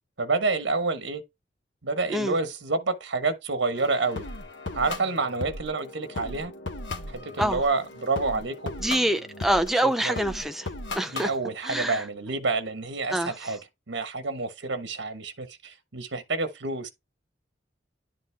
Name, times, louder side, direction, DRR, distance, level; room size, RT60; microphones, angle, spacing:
voice 1, 0.2-1.2 1.8-4.3 4.7-6.5 7.1-8.7 9.8-10.2 11.1-13.6 13.9-16.9, right 3 dB, 90° right, 1.3 m, -28 dB
sound 1, 3.8-11.3, left 2 dB, 85° left, 1.1 m, -37 dB
voice 2, 8.8-10.7 10.9-11.3 11.6-12.0 13.1-13.5, right 1 dB, ahead, 0.6 m, -26 dB
10.5 x 3.8 x 3.4 m
head